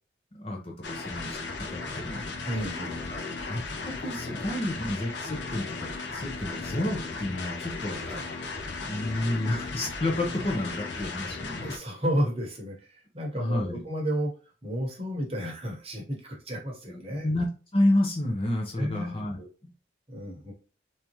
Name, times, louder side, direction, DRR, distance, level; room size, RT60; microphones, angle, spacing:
voice 1, 0.3-1.4 1.7-2.3 3.1-3.6 4.0-8.0 8.8-11.8 13.3-13.8 16.9-19.7, left 1 dB, 30° left, 0 dB, 0.8 m, -30 dB
sound 1, 0.8-11.8, left 3 dB, 65° left, 0.7 m, -36 dB
voice 2, 2.5-3.4 8.0-8.3 11.6-14.3 14.6-17.3 18.8-19.2 20.1-20.5, equal, 30° right, -1 dB, 1.0 m, -32 dB
3.5 x 2.8 x 3.0 m, 0.36 s
head